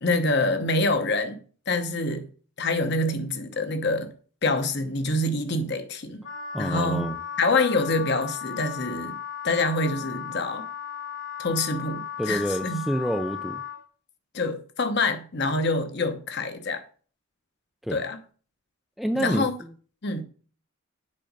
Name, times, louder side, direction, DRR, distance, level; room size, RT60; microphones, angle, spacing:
voice 1, 0.0-2.3 2.6-4.1 4.4-6.2 6.6-7.1 7.4-9.2 9.4-10.7 11.4-12.8 14.3-16.8 17.9-18.2 19.1-19.5 20.0-20.2, left 2 dB, 50° left, 0.9 m, -26 dB
Wind instrument woodwind instrument, 6.2-13.8, left 9 dB, 70° left, 2.4 m, -36 dB
voice 2, 6.5-7.2 12.2-13.6 17.8-18.0 19.0-19.5, equal, ahead, 0.3 m, -27 dB
7.6 x 5.1 x 5.2 m
head